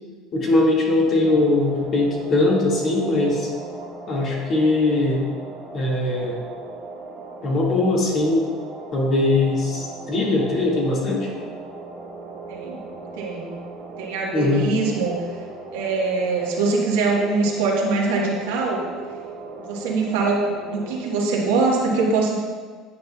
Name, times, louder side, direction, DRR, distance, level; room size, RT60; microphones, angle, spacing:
voice 1, 0.3-3.5 4.1-5.3 5.7-6.4 7.4-8.5 8.9-11.3 14.3-14.7, left 2 dB, 45° left, -3 dB, 1.8 m, -20 dB
sound 1, 1.2-21.1, right 3 dB, 30° right, 1.6 m, -38 dB
voice 2, 12.5-12.8 13.2-13.5 14.0-15.3 15.7-18.8 19.6-22.3, right 3 dB, 85° right, -2 dB, 1.2 m, -23 dB
9.5 x 5.5 x 2.3 m, 1.5 s
supercardioid pair, 100°, 0 cm